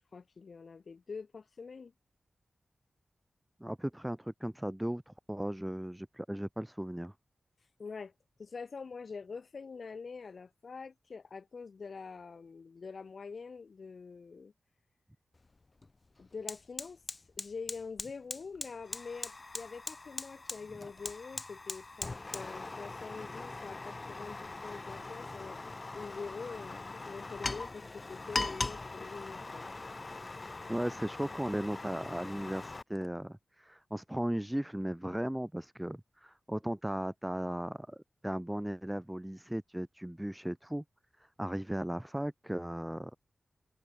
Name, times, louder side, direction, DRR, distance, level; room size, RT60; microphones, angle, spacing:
voice 1, 0.0-1.9 7.8-8.1 8.4-14.5 16.2-17.0 17.4-29.7, left 5 dB, 55° left, 6.4 m, -45 dB
voice 2, 3.6-7.1 30.7-40.8 41.4-43.1, right 1 dB, 5° right, 1.5 m, -36 dB
Fire, 15.3-15.5 15.8-32.8, left 3 dB, 30° left, 5.2 m, -41 dB
wide cardioid pair, 150°, 0 cm